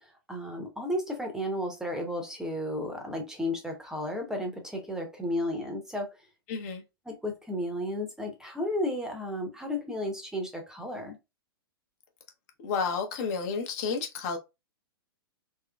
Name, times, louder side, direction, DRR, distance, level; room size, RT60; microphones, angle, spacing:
voice 1, 0.3-6.1 7.1-11.2, left 1 dB, 5° right, 0.8 m, -33 dB
voice 2, 6.5-6.8 12.6-14.4, left 5 dB, 40° left, 0.9 m, -31 dB
3.7 x 2.9 x 2.2 m
figure-of-eight pair, 105°, 13 cm